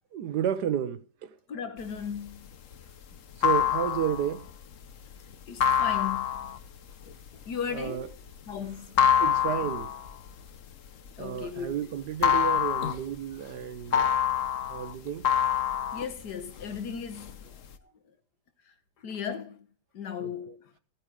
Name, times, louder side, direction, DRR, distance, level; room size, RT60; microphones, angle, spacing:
voice 1, 0.1-1.3 3.4-4.5 5.6-5.7 7.7-8.1 9.2-9.9 11.2-14.2 14.7-15.3 20.2-20.6, right 9 dB, 75° right, 1.4 m, -32 dB
voice 2, 1.5-2.5 5.5-6.5 7.5-8.1 8.5-9.0 11.2-11.8 15.9-17.5 19.0-19.6 19.9-20.6, left 7 dB, 70° left, 1.9 m, -36 dB
sound 1, 1.9-11.7 12.0-16.8 17.1-17.8, left 9 dB, 55° left, 1.2 m, -26 dB
15.0 x 9.0 x 4.8 m
omnidirectional pair, 1.8 m